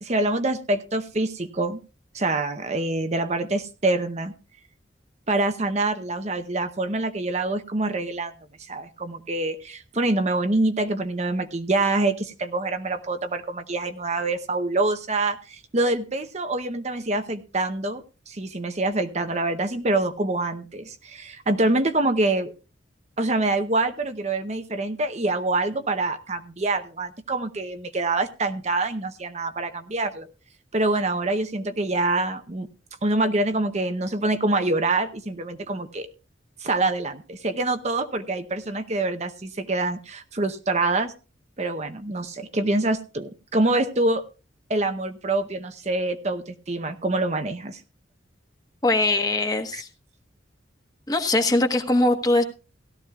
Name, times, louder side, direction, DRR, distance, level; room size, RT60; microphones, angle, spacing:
voice 1, 0.0-1.8 2.1-4.3 5.3-8.3 8.7-22.5 23.2-30.3 30.7-32.7 33.0-36.1 36.6-41.1 41.6-44.2 44.7-47.8 49.7-49.8, right 2 dB, 35° right, 8 dB, 0.7 m, -25 dB
voice 2, 48.8-49.9 51.1-52.4, left 2 dB, 20° left, 5 dB, 1.2 m, -21 dB
17.0 x 13.0 x 2.4 m, 0.33 s
head